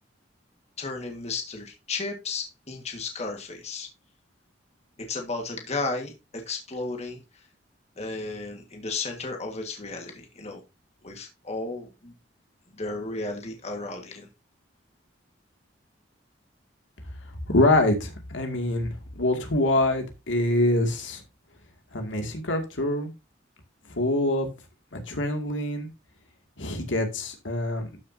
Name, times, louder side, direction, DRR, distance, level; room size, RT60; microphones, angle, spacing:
voice 1, 0.8-3.9 5.1-7.2 8.0-10.6 11.0-12.1 12.8-14.3, left 3 dB, 35° left, 3 dB, 1.7 m, -34 dB
voice 2, 17.5-21.2 21.9-23.1 24.0-24.5 24.9-25.9 26.6-27.9, left 1 dB, 80° left, 4 dB, 2.3 m, -25 dB
13.0 x 6.4 x 2.7 m, 0.25 s
head